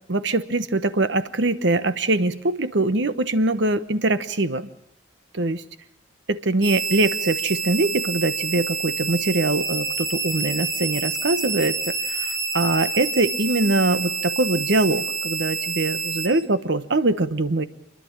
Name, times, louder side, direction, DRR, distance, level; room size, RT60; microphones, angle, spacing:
voice 1, 0.1-4.7 5.3-5.6 6.3-12.3 12.5-17.7, right 2 dB, 65° right, 12 dB, 1.1 m, -23 dB
sound 1, 6.6-16.3, right 4 dB, 20° right, 3.2 m, -28 dB
28.5 x 11.5 x 8.7 m, 0.85 s
head